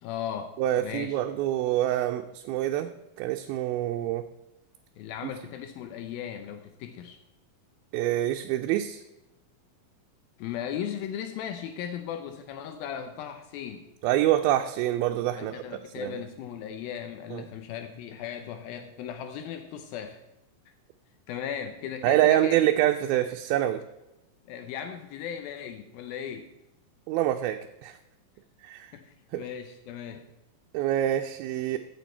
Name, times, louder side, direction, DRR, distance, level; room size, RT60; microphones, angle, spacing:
voice 1, 0.0-1.2 5.0-7.2 10.4-13.9 15.4-20.2 21.3-22.6 24.5-26.5 28.9-30.3, left 9 dB, 80° left, 7 dB, 2.5 m, -37 dB
voice 2, 0.6-2.9 3.2-4.3 7.9-9.0 14.0-15.5 16.0-16.1 17.3-17.4 22.0-23.8 27.1-28.0 28.6-29.0 29.3-29.4 30.7-31.8, right 13 dB, 85° right, 5 dB, 2.4 m, -26 dB
14.0 x 7.1 x 4.4 m, 0.95 s
omnidirectional pair, 4.3 m